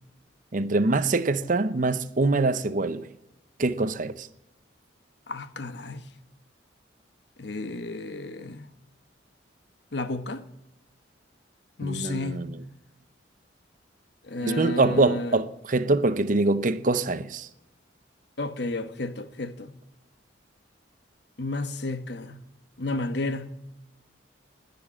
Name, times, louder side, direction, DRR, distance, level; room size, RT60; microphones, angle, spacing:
voice 1, 0.5-3.1 3.6-4.3 11.8-12.6 14.4-17.5, right 2 dB, 45° right, 0.6 m, -24 dB
voice 2, 5.3-6.0 7.4-8.7 9.9-10.4 11.8-12.4 14.3-15.4 18.4-19.7 21.4-22.4 22.8-23.5, left 2 dB, 60° left, 1.1 m, -32 dB
20.0 x 6.9 x 7.4 m
head